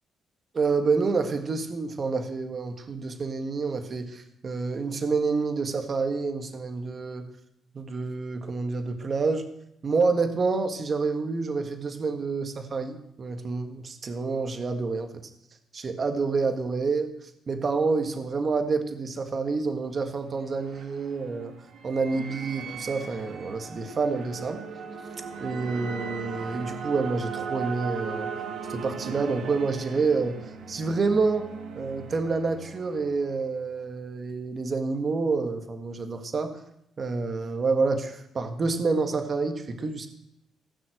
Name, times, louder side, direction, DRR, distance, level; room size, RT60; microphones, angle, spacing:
voice 1, 0.5-7.3 7.7-9.4 9.8-15.1 15.7-21.5 21.8-24.6 25.4-28.3 28.7-30.4 30.7-31.5 31.8-36.5 37.0-40.1, right 4 dB, 40° right, 7 dB, 1.7 m, -28 dB
sound 1, 20.2-33.8, right 6 dB, 70° right, 1.7 m, -38 dB
16.5 x 6.1 x 7.9 m, 0.79 s
cardioid pair, 90°, 0 cm